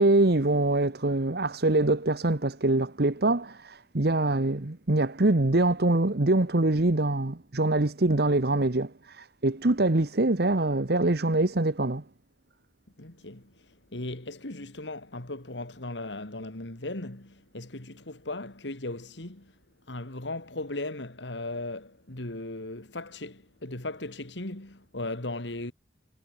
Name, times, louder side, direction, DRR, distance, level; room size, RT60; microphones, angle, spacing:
voice 1, 0.0-12.0, right 2 dB, 60° right, 1.2 m, -24 dB
voice 2, 13.0-13.5 13.9-19.5 19.9-25.7, left 2 dB, 85° left, 2.8 m, -37 dB
head